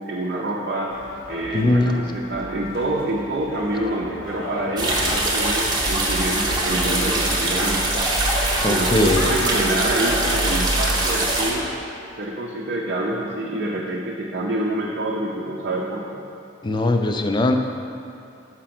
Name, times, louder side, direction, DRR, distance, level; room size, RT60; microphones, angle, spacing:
voice 1, 0.1-0.9 1.3-8.0 8.6-11.7 12.2-16.2, right 1 dB, 50° right, -4 dB, 0.6 m, -26 dB
sound 1, 0.9-11.8, left 1 dB, 90° left, 1.2 m, -35 dB
voice 2, 1.5-2.1 8.6-9.2 16.6-17.6, left 2 dB, 25° left, 5 dB, 0.3 m, -20 dB
sound 2, 4.8-11.5, right 1 dB, 20° right, 0.9 m, -22 dB
5.8 x 5.0 x 5.9 m, 2.7 s
head